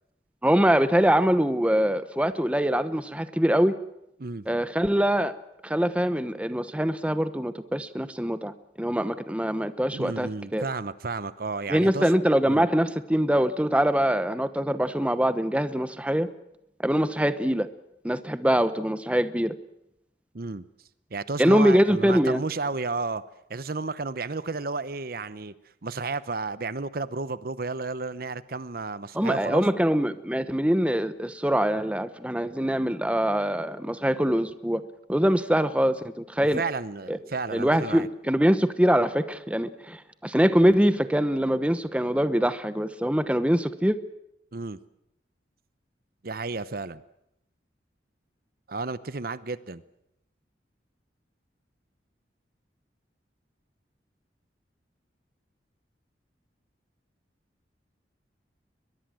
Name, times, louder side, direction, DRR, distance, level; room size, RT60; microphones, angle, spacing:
voice 1, 0.4-3.8 4.5-5.3 5.6-10.6 11.7-16.3 16.8-17.7 18.0-19.5 21.4-22.4 29.1-34.8 35.1-36.6 37.1-37.2 37.5-44.0, equal, 5° right, 12 dB, 1.0 m, -23 dB
voice 2, 9.9-12.1 12.5-12.6 20.3-20.6 21.1-25.5 25.8-29.6 36.5-38.1 44.5-44.8 46.2-47.0 48.7-49.8, right 3 dB, 55° right, 15 dB, 0.8 m, -32 dB
22.0 x 22.0 x 7.7 m, 0.83 s
head